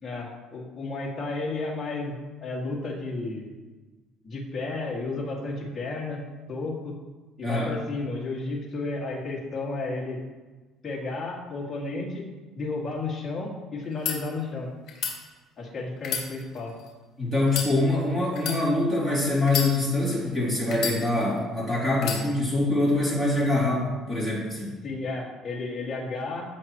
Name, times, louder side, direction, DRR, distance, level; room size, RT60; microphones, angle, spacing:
voice 1, 0.0-3.5 4.2-6.2 6.5-6.9 7.4-10.2 10.8-12.3 12.6-14.7 15.6-16.7 24.8-26.4, left 3 dB, 20° left, -4 dB, 2.2 m, -32 dB
sound 1, 13.8-14.2 14.9-15.1 16.0-16.9 17.4-17.7 18.3-18.6 19.4-20.1 20.7-21.4 22.0-22.2, left 7 dB, 45° left, 3.3 m, -30 dB
voice 2, 17.2-24.7, left 2 dB, 15° right, -6 dB, 3.0 m, -24 dB
16.5 x 6.0 x 3.1 m, 1.3 s
cardioid pair, 165°, 0 cm